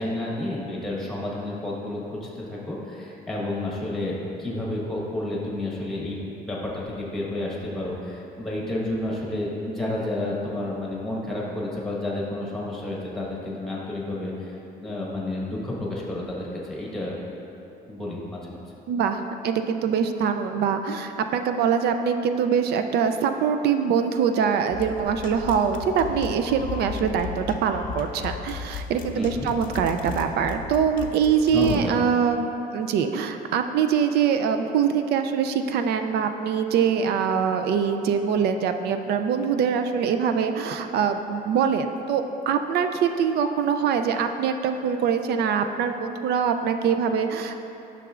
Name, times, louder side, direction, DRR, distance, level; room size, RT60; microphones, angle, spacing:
voice 1, 0.0-17.2 17.9-18.6 29.1-29.5 31.5-31.9, left 1 dB, ahead, -4 dB, 1.2 m, -30 dB
voice 2, 18.9-47.6, right 7 dB, 70° right, 7 dB, 0.4 m, -24 dB
sound 1, 24.7-31.8, left 6 dB, 50° left, 0.5 m, -36 dB
11.0 x 6.0 x 2.4 m, 2.9 s
cardioid pair, 160°, 17 cm